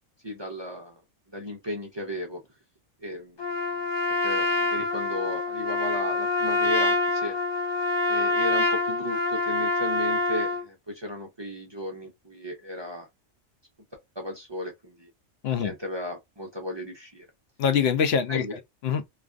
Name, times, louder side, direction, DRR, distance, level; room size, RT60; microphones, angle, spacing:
voice 1, 0.2-1.0 1.3-2.4 3.0-3.4 4.1-7.3 8.1-13.1 14.2-15.1 15.6-17.3 18.3-18.5, left 1 dB, 45° right, 0.3 m, -35 dB
Trumpet, 3.4-10.6, left 2 dB, 25° left, 0.6 m, -26 dB
voice 2, 17.6-19.1, left 7 dB, 65° left, 0.7 m, -25 dB
2.4 x 2.2 x 2.4 m
omnidirectional pair, 1.3 m